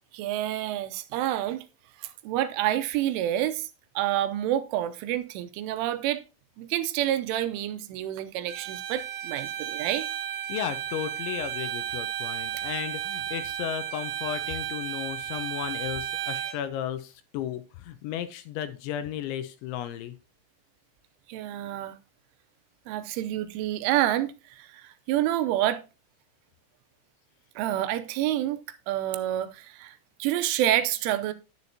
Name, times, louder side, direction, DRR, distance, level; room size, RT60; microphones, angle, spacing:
voice 1, 0.1-1.7 2.0-3.7 4.0-6.2 6.6-10.1 21.3-22.0 22.9-25.8 27.6-28.6 28.9-31.3, right 13 dB, 85° right, 3.1 m, -28 dB
Bowed string instrument, 8.5-16.6, right 11 dB, 70° right, 3.1 m, -33 dB
voice 2, 10.5-20.2, left 10 dB, 80° left, 2.9 m, -34 dB
11.0 x 9.7 x 2.8 m
omnidirectional pair, 5.7 m